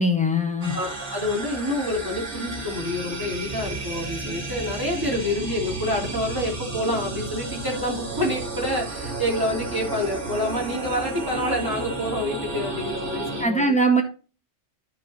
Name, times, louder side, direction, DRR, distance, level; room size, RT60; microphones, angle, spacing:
voice 1, 0.0-0.7 13.4-14.0, right 1 dB, 5° left, 2 dB, 1.6 m, -21 dB
sound 1, 0.6-13.4, right 3 dB, 85° right, 2.5 m, -32 dB
voice 2, 0.7-13.7, left 1 dB, 20° right, -3 dB, 2.8 m, -27 dB
11.5 x 4.5 x 4.2 m, 0.35 s
omnidirectional pair, 1.2 m